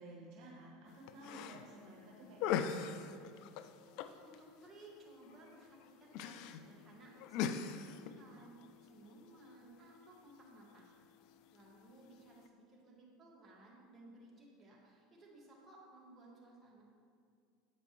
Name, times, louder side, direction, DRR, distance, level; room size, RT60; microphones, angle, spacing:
voice 1, 0.0-3.0, right 2 dB, 55° right, -2 dB, 1.0 m, -53 dB
sound 1, 0.9-12.5, left 8 dB, 60° left, 0.3 m, -44 dB
voice 2, 4.2-10.9 11.5-16.8, right 2 dB, 20° right, -4 dB, 1.7 m, -59 dB
8.2 x 5.1 x 3.0 m, 2.3 s
hypercardioid pair, 80°, 0 cm